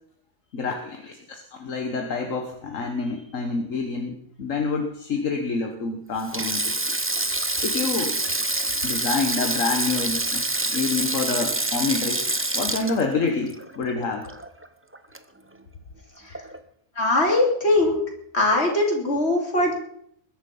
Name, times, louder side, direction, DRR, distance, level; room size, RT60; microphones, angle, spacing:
voice 1, 0.5-6.7 7.6-8.2 8.8-10.4 10.7-12.2 12.6-14.3, left 4 dB, 75° left, 4 dB, 1.8 m, -27 dB
Sink (filling or washing), 6.2-14.7 14.9-15.2 16.3-16.6, right 2 dB, 10° right, 0.7 m, -27 dB
voice 2, 17.0-18.0 18.3-19.7, left 2 dB, 50° left, 0 dB, 3.9 m, -21 dB
21.0 x 11.5 x 5.5 m, 0.69 s
omnidirectional pair, 1.4 m